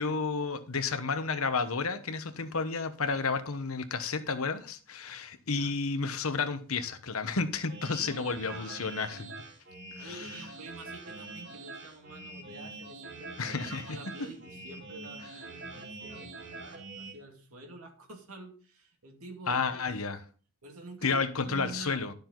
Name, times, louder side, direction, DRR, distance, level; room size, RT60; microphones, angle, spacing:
voice 1, 0.0-9.3 10.0-10.1 13.4-13.8 19.5-20.2 21.0-22.1, left 4 dB, 80° left, 1.1 m, -31 dB
voice 2, 5.4-5.7 8.4-9.0 10.0-19.8 20.6-22.1, right 2 dB, 90° right, 2.5 m, -48 dB
sound 1, 7.7-17.1, right 3 dB, 55° right, 2.6 m, -44 dB
12.0 x 6.9 x 3.9 m
head